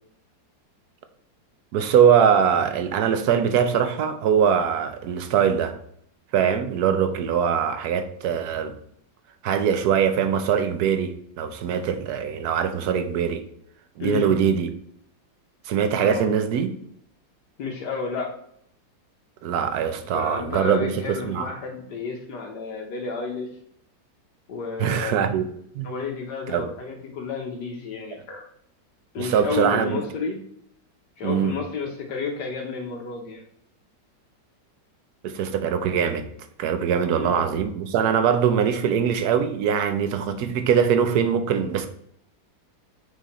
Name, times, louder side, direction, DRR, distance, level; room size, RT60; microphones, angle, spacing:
voice 1, 1.7-5.8 6.3-8.7 9.4-13.4 14.0-14.7 15.6-16.7 19.4-21.4 24.8-25.5 25.7-25.9 26.5-26.7 29.2-30.0 31.2-31.6 35.2-36.3 36.6-41.9, right 7 dB, 65° right, 1.1 m, -22 dB
voice 2, 14.0-14.3 16.0-16.3 17.6-18.3 20.1-23.5 24.5-25.3 25.8-28.4 29.1-30.4 31.2-33.4 37.1-37.4, left 4 dB, 70° left, 1.4 m, -31 dB
6.2 x 3.9 x 4.2 m
omnidirectional pair, 2.0 m